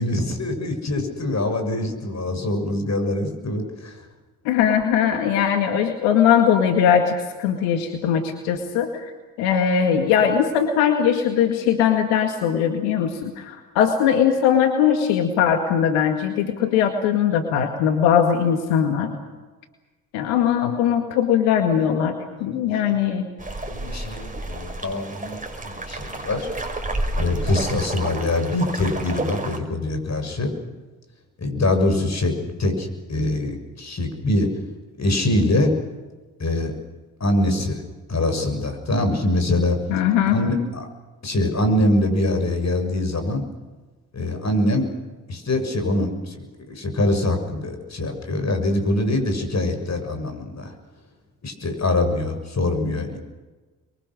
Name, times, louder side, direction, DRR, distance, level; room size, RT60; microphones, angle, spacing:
voice 1, 0.0-4.1 22.4-23.1 23.7-26.5 27.2-30.5 31.4-34.5 35.0-35.7 36.4-36.7 37.2-37.8 38.1-39.8 40.3-40.9 41.2-43.5 44.1-44.9 45.3-50.7 51.4-53.2, left 1 dB, 35° left, 6 dB, 7.1 m, -24 dB
voice 2, 4.5-9.1 9.4-19.1 20.1-23.3 39.9-40.4, left 8 dB, 85° left, 5 dB, 2.2 m, -20 dB
sound 1, 23.4-29.6, right 2 dB, 20° right, 5.4 m, -30 dB
27.5 x 23.5 x 6.5 m, 1.3 s
hypercardioid pair, 55°, 43 cm